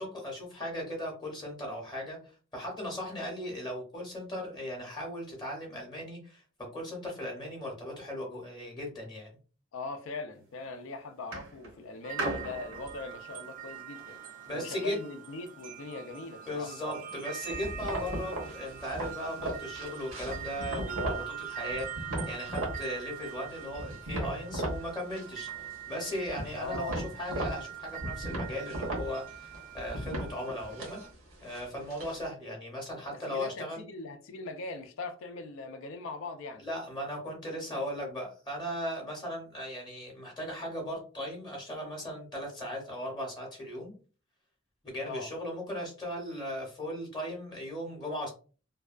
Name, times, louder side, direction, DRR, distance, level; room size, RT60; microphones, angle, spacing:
voice 1, 0.0-2.2 2.5-6.4 6.7-9.3 14.5-15.0 16.5-31.0 31.4-33.8 36.6-43.9 44.8-48.3, equal, 20° left, 0.7 m, -37 dB
voice 2, 9.7-14.2 14.5-16.7 21.0-21.3 26.6-27.0 33.1-36.6 45.0-45.3, left 3 dB, 65° left, 0.4 m, -41 dB
sound 1, 10.3-10.7 11.3-14.5 15.4-15.5, right 2 dB, 65° right, 0.7 m, -39 dB
sound 2, 12.0-31.1, right 10 dB, 40° right, 0.3 m, -43 dB
sound 3, 17.5-21.3 21.6-22.8 23.2-24.8 25.1-25.7 26.0-32.3, right 1 dB, 90° right, 1.1 m, -37 dB
2.6 x 2.2 x 2.4 m
head